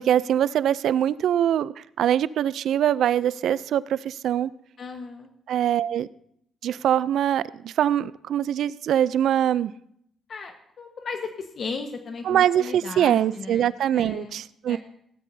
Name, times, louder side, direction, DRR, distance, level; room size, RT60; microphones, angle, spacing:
voice 1, 0.0-4.5 5.5-6.1 6.6-9.7 12.2-14.8, right 10 dB, 75° right, 18 dB, 0.4 m, -23 dB
voice 2, 4.8-5.3 10.3-14.4 14.7-14.8, left 4 dB, 50° left, 5 dB, 1.2 m, -36 dB
17.0 x 12.5 x 2.7 m, 0.71 s
cardioid pair, 90°, 0 cm